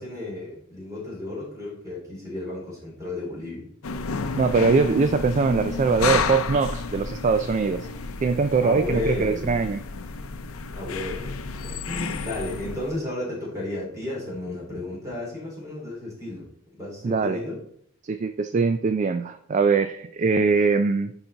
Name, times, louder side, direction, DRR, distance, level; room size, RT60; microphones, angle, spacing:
voice 1, 0.0-3.7 8.6-9.6 10.7-16.5 16.8-17.6, left 2 dB, 15° right, -4 dB, 3.2 m, -33 dB
sound 1, 3.8-13.0, left 4 dB, 80° left, 0.6 m, -31 dB
voice 2, 4.4-7.9 8.2-9.8 17.0-17.4 18.0-21.1, right 4 dB, 35° right, 9 dB, 0.3 m, -22 dB
10.0 x 4.0 x 3.9 m, 0.66 s
head